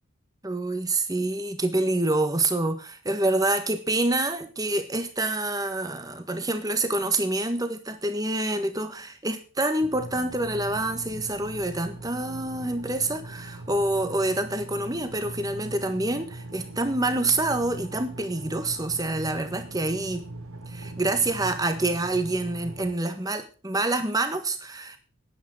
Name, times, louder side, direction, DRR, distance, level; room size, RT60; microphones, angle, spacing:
voice 1, 0.4-20.2 20.7-25.0, right 2 dB, 15° right, 9 dB, 1.5 m, -27 dB
sound 1, 9.8-22.9, right 2 dB, 80° right, 1.7 m, -40 dB
10.5 x 10.0 x 6.3 m, 0.37 s
head